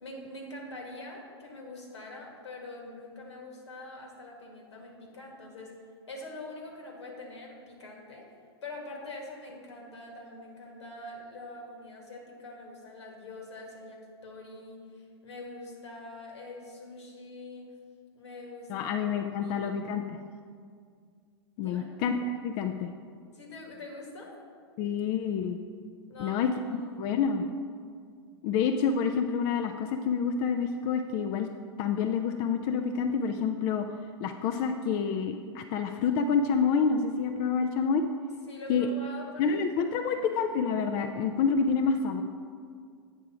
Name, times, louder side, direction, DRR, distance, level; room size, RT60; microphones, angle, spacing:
voice 1, 0.0-5.8 6.1-8.3 8.6-17.7 18.2-18.9 19.4-19.7 21.6-21.9 23.3-24.4 26.1-26.9 38.5-39.5 39.9-40.3, left 2 dB, 80° left, 0 dB, 1.6 m, -44 dB
voice 2, 18.7-20.2 21.6-22.2 22.4-22.9 24.8-25.6 26.2-27.5 28.4-31.5 31.8-33.9 34.2-38.0 38.7-38.9 39.4-42.2, left 6 dB, 45° left, 6 dB, 0.4 m, -28 dB
8.2 x 3.6 x 5.9 m, 2.1 s
hypercardioid pair, 105°, 14 cm